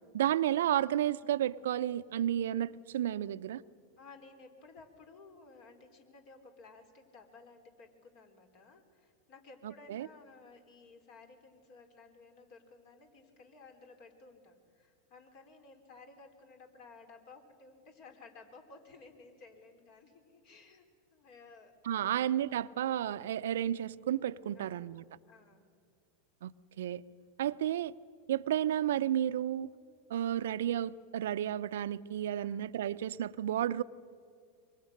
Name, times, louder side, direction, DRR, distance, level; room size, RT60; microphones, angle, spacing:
voice 1, 0.1-3.6 9.9-10.1 21.9-25.0 26.4-26.5 26.8-27.0 27.4-27.9 28.3-29.7 30.1-33.8, right 11 dB, 75° right, 0.6 m, -32 dB
voice 2, 4.0-21.7 22.0-22.3 23.3-23.6 24.5-24.8 25.3-25.7 32.4-32.6, left 3 dB, 55° left, 4.3 m, -56 dB
25.5 x 23.5 x 6.6 m
hypercardioid pair, 100°, 0 cm